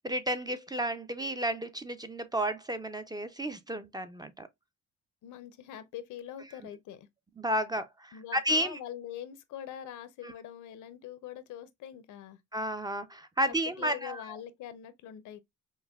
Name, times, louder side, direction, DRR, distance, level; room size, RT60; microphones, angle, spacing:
voice 1, 0.0-4.5 7.4-8.8 10.2-10.3 12.5-14.2, equal, 15° right, 0.4 m, -32 dB
voice 2, 5.2-7.1 8.1-12.4 13.4-15.4, left 10 dB, 75° left, 0.6 m, -43 dB
5.2 x 2.1 x 2.2 m
cardioid pair, 90°, 30 cm